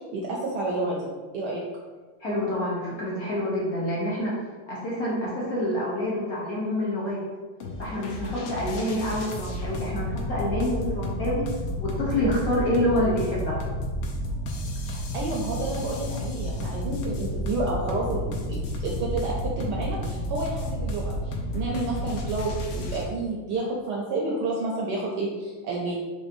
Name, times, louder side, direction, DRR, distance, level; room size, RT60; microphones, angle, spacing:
voice 1, 0.1-1.1 1.3-1.6 14.8-26.0, right 2 dB, 75° right, -3 dB, 1.0 m, -30 dB
voice 2, 2.2-4.4 4.7-7.2 7.8-11.4 11.8-13.6, left 1 dB, 60° left, -6 dB, 1.1 m, -27 dB
sound 1, 7.6-23.1, equal, 85° left, 1.4 m, -31 dB
5.1 x 2.6 x 2.6 m, 1.4 s
omnidirectional pair, 2.2 m